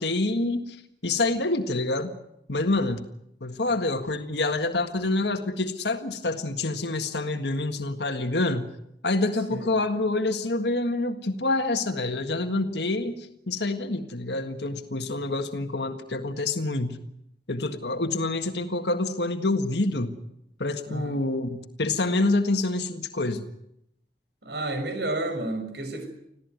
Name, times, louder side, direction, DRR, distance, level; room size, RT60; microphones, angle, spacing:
voice 1, 0.0-2.1 2.5-3.0 3.4-8.7 9.0-17.0 17.5-20.2 20.6-23.4, left 2 dB, 85° left, 6 dB, 1.7 m, -27 dB
voice 2, 20.9-21.2 24.4-26.1, right 2 dB, 80° right, 7 dB, 6.3 m, -31 dB
26.0 x 16.5 x 9.5 m, 0.76 s
head